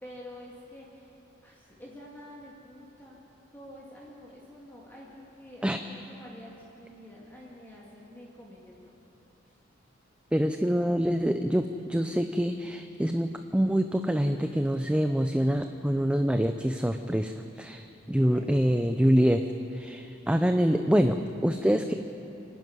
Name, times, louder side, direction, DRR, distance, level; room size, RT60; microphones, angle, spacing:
voice 1, 0.0-1.2 1.4-3.2 3.5-8.9 9.4-9.6 10.7-10.8 18.2-18.9, left 1 dB, 10° left, -5 dB, 2.3 m, -48 dB
voice 2, 10.3-19.4 19.7-21.9, equal, 5° right, 7 dB, 0.5 m, -25 dB
25.5 x 11.5 x 9.5 m, 2.9 s
head